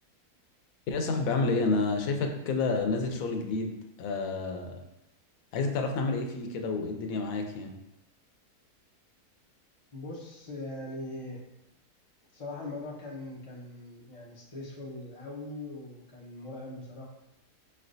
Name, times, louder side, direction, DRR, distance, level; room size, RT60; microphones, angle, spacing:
voice 1, 0.9-4.7 5.5-7.7, left 3 dB, 65° left, 4 dB, 1.0 m, -29 dB
voice 2, 9.9-11.4 12.3-17.1, left 2 dB, 50° left, -4 dB, 0.4 m, -41 dB
4.9 x 3.2 x 2.6 m, 0.88 s
omnidirectional pair, 1.7 m